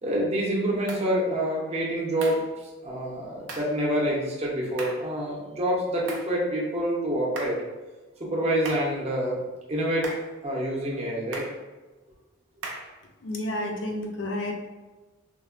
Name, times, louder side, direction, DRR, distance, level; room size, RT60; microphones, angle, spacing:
voice 1, 0.0-2.4 2.8-7.6 8.2-9.4 9.7-10.1 10.4-11.4, right 1 dB, 30° right, -4 dB, 0.6 m, -27 dB
sound 1, 0.9-1.1 2.2-2.5 3.5-3.7 4.8-5.1 6.1-6.4 7.4-7.7 8.6-9.0 10.0-10.3 11.3-11.6 12.6-13.0, right 2 dB, 70° right, 0.5 m, -38 dB
voice 2, 13.2-14.5, left 1 dB, 60° left, 1 dB, 0.4 m, -30 dB
3.3 x 2.1 x 2.4 m, 1.2 s
head